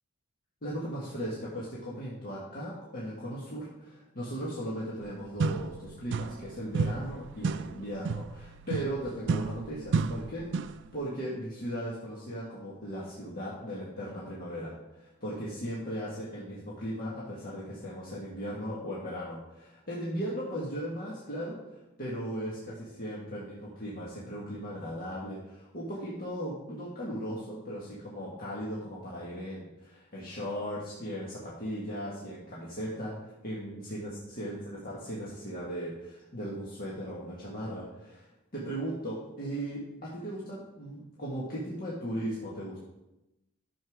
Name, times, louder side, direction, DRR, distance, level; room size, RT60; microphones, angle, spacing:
voice 1, 0.6-42.8, equal, 45° left, -6 dB, 1.7 m, -37 dB
sound 1, 5.0-5.1 5.4-6.5 6.7-10.9, right 4 dB, 55° right, 0.3 m, -32 dB
11.0 x 7.0 x 3.6 m, 0.95 s
head